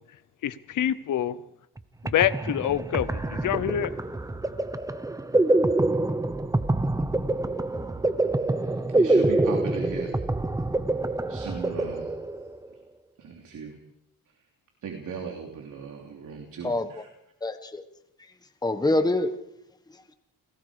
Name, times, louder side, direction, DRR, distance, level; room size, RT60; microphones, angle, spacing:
voice 1, 0.4-1.4 2.0-3.9, left 10 dB, 60° left, 0.9 m, -26 dB
sound 1, 1.8-12.7, right 2 dB, 10° right, 0.9 m, -26 dB
voice 2, 8.6-10.1 11.3-12.1 13.2-13.7 14.8-17.1, right 6 dB, 60° right, 3.1 m, -37 dB
voice 3, 17.4-17.8 18.2-18.3 18.6-19.3 19.9-20.1, left 2 dB, 10° left, 1.4 m, -26 dB
30.0 x 18.5 x 5.1 m
cardioid pair, 150°, 36 cm